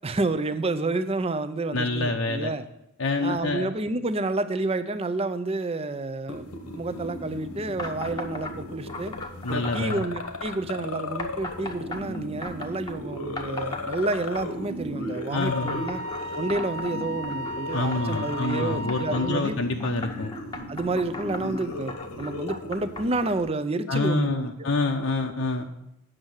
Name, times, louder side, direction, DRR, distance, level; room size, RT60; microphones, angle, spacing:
voice 1, 0.0-2.7 3.2-6.4 6.7-9.1 9.5-16.0 16.4-19.5 20.7-24.5, right 2 dB, 25° right, 11 dB, 0.5 m, -29 dB
voice 2, 1.7-2.5 3.0-3.7 9.4-10.0 15.3-15.8 17.7-20.3 23.9-25.7, left 3 dB, 60° left, 3 dB, 0.7 m, -27 dB
sound 1, 6.3-23.5, left 2 dB, 85° left, 1.3 m, -36 dB
sound 2, 7.8-8.5 8.9-10.6 11.2-13.0 13.4-14.7 15.4-19.2 19.8-23.4, left 2 dB, 20° left, 0.8 m, -38 dB
Wind instrument woodwind instrument, 15.3-19.5, left 1 dB, 70° right, 1.0 m, -35 dB
8.8 x 6.4 x 6.3 m, 0.86 s
head